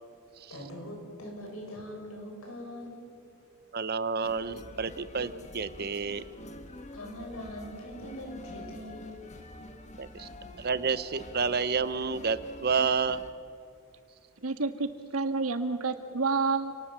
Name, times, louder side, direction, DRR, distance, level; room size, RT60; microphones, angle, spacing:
voice 1, 0.5-3.0 6.9-9.2, left 1 dB, 80° left, 0 dB, 7.4 m, -42 dB
voice 2, 3.7-6.3 10.0-10.3 10.6-13.2, right 5 dB, 50° right, 14 dB, 0.9 m, -30 dB
sound 1, 4.2-13.3, left 1 dB, 35° left, 1.6 m, -47 dB
voice 3, 14.4-16.7, right 4 dB, 80° right, 9 dB, 1.7 m, -29 dB
29.0 x 19.0 x 7.5 m, 2.4 s
head